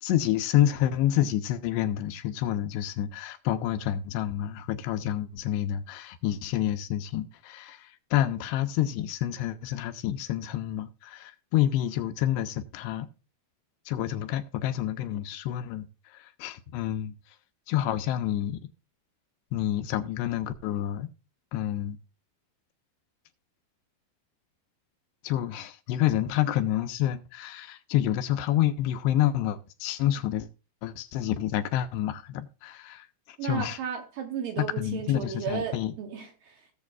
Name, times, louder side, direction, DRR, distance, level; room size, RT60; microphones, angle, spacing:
voice 1, 0.0-13.1 13.9-17.2 17.7-18.6 19.5-21.1 21.5-22.0 25.2-30.5 30.8-33.8 34.6-35.9, left 12 dB, 80° left, 2.6 m, -28 dB
voice 2, 33.4-36.7, right 8 dB, 70° right, 2.2 m, -34 dB
18.0 x 7.2 x 2.3 m
omnidirectional pair, 5.0 m